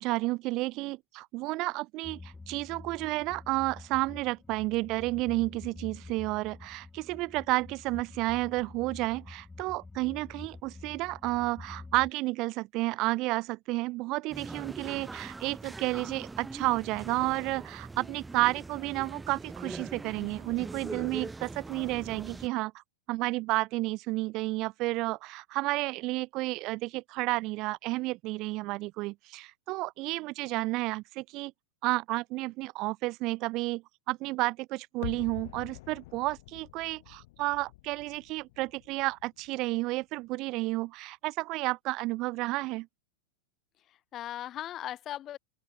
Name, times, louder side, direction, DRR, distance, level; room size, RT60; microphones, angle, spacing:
voice 1, 0.0-22.8 23.1-31.5 31.8-42.9, right 21 dB, 45° right, 0.5 m, -31 dB
sound 1, 2.0-12.1, left 3 dB, 10° left, 7.1 m, -48 dB
sound 2, 14.3-22.5, right 3 dB, 10° right, 5.8 m, -42 dB
sound 3, 35.0-40.0 40.2-40.3, left 20 dB, 55° left, 3.5 m, -46 dB
voice 2, 43.9-45.4, left 12 dB, 35° left, 2.2 m, -39 dB
open air
figure-of-eight pair, 95°, 0 cm